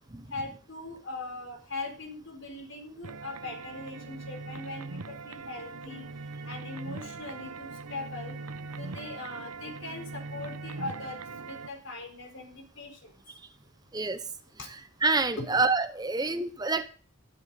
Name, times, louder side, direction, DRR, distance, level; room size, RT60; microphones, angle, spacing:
voice 1, 0.3-6.0 6.4-8.4 8.8-13.2 14.6-14.7 15.4-15.6, left 2 dB, 55° left, 4 dB, 4.2 m, -40 dB
sound 1, 3.0-11.7, right 3 dB, 85° right, 0.9 m, -41 dB
voice 2, 13.9-14.2 15.0-16.9, right 3 dB, 20° right, 11 dB, 0.7 m, -27 dB
12.0 x 11.0 x 5.3 m, 0.40 s
head